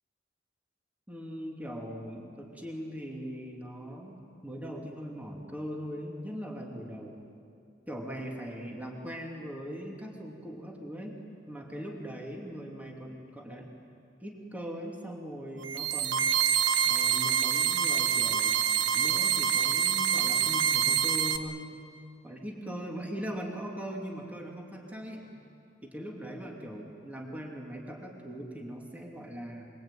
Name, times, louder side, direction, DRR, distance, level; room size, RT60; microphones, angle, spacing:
voice 1, 1.1-7.2 7.9-11.2 11.5-13.7 14.2-16.3 16.8-21.7 22.2-25.4 25.8-29.7, equal, 10° right, -1 dB, 2.9 m, -40 dB
sound 1, 15.6-21.4, right 8 dB, 80° right, 1.3 m, -26 dB
23.5 x 23.0 x 9.1 m, 2.6 s
head